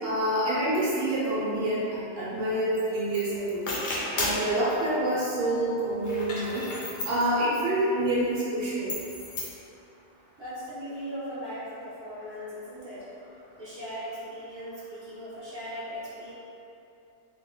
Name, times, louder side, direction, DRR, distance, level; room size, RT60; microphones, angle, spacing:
voice 1, 0.0-3.7 4.1-6.6 7.0-8.9, right 1 dB, 80° right, -9 dB, 1.2 m, -27 dB
sound 1, 3.1-3.2 3.5-4.5 6.0-7.3 8.9-9.5, left 2 dB, 65° left, 0.9 m, -33 dB
voice 2, 10.4-13.1 13.6-16.3, equal, 25° right, -11 dB, 0.8 m, -38 dB
3.0 x 2.2 x 3.8 m, 2.7 s
omnidirectional pair, 1.3 m